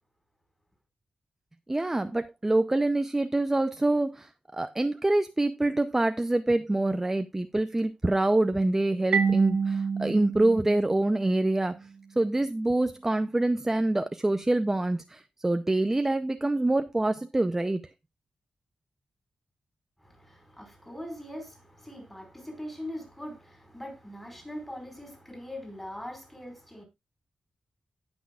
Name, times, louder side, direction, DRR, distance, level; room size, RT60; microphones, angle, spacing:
voice 1, 1.7-11.8 12.2-17.8, right 2 dB, 15° right, 0.6 m, -26 dB
Marimba xylophone, 9.1-11.8, right 5 dB, 85° right, 1.2 m, -28 dB
voice 2, 20.0-26.8, left 1 dB, 10° left, 5.0 m, -41 dB
17.5 x 6.3 x 2.4 m
wide cardioid pair, 110°, 2 cm